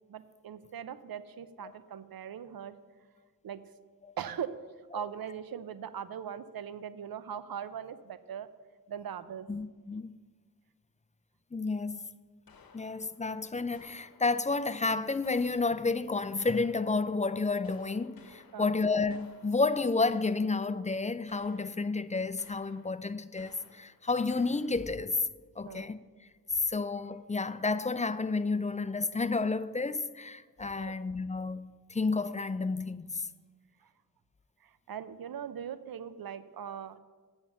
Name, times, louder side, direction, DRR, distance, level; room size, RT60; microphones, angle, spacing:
voice 1, 0.1-2.8 3.4-3.6 4.2-4.5 4.9-8.5 8.9-9.5 18.5-18.8 25.6-25.9 30.8-31.0 33.8-33.9 34.6-37.0, right 8 dB, 85° right, 0.6 m, -40 dB
voice 2, 9.5-10.1 11.5-12.1 12.7-25.3 25.6-26.0 26.5-33.3, left 3 dB, 20° left, 0.4 m, -31 dB
sound 1, 12.5-14.6 15.2-17.2 17.6-20.8 21.3-22.1 22.4-25.1, left 5 dB, 85° left, 0.9 m, -59 dB
8.9 x 7.1 x 7.2 m
cardioid pair, 50°, 35 cm